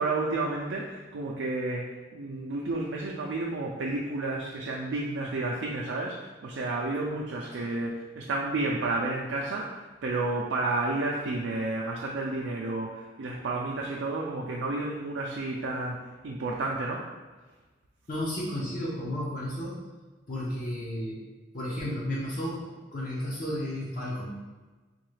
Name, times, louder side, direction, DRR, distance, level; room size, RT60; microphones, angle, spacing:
voice 1, 0.0-1.8 2.1-9.7 10.0-17.1, right 2 dB, 75° right, -2 dB, 0.4 m, -31 dB
voice 2, 18.1-19.8 20.3-21.2 21.5-24.4, left 1 dB, 45° left, -7 dB, 0.7 m, -33 dB
3.7 x 2.3 x 3.2 m, 1.3 s
head